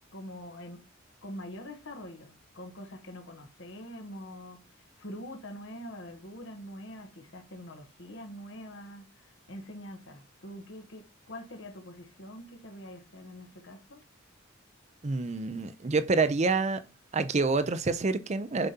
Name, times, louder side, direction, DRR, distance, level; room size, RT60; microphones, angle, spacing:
voice 1, 0.1-0.8 1.2-14.0, equal, 60° left, 1.0 m, -44 dB
voice 2, 15.0-16.8 17.1-18.7, right 3 dB, 30° right, 0.5 m, -27 dB
6.9 x 5.2 x 2.8 m
head